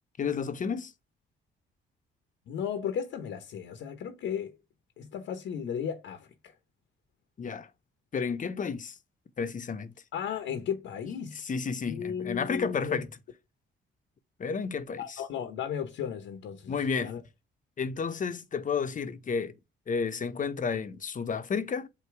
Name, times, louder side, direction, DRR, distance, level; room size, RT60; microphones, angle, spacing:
voice 1, 0.2-0.9 7.4-7.7 8.1-8.9 9.4-9.9 11.4-13.1 14.4-15.2 16.7-17.1 17.8-19.5 19.9-21.9, left 5 dB, 40° left, 0.9 m, -31 dB
voice 2, 2.5-4.5 5.0-6.5 10.1-11.5 11.8-13.0 15.0-16.7 17.0-17.2, left 8 dB, 75° left, 1.1 m, -35 dB
8.2 x 2.9 x 4.7 m
cardioid pair, 90°, 20 cm